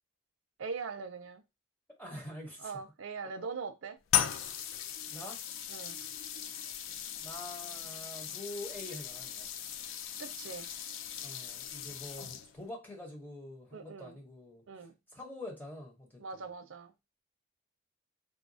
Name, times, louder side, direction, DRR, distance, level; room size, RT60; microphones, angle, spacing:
voice 1, 0.6-1.4 2.6-4.0 5.7-6.0 10.2-10.7 13.7-14.2 14.7-14.9 16.2-16.9, right 5 dB, 80° right, 0.5 m, -41 dB
voice 2, 2.0-2.7 5.1-5.4 7.2-9.5 11.2-14.6 15.1-16.4, left 1 dB, 10° left, 0.9 m, -45 dB
sound 1, 4.1-12.7, left 10 dB, 80° left, 0.4 m, -37 dB
3.6 x 2.3 x 2.7 m
head